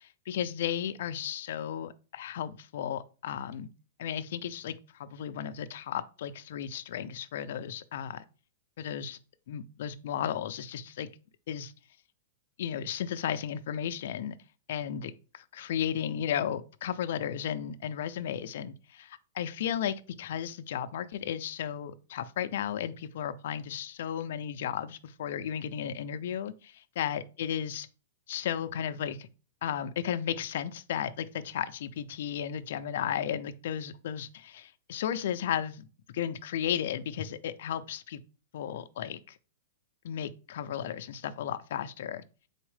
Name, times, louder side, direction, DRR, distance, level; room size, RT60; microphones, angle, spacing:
voice 1, 0.0-3.7 4.0-8.2 8.8-9.2 9.5-11.1 11.5-11.7 12.6-14.4 14.7-27.9 28.3-29.3 29.6-35.9 36.1-38.2 38.5-39.4 40.0-42.2, left 9 dB, 60° left, 0.4 m, -34 dB
3.9 x 3.5 x 3.3 m
supercardioid pair, 165°, 0 cm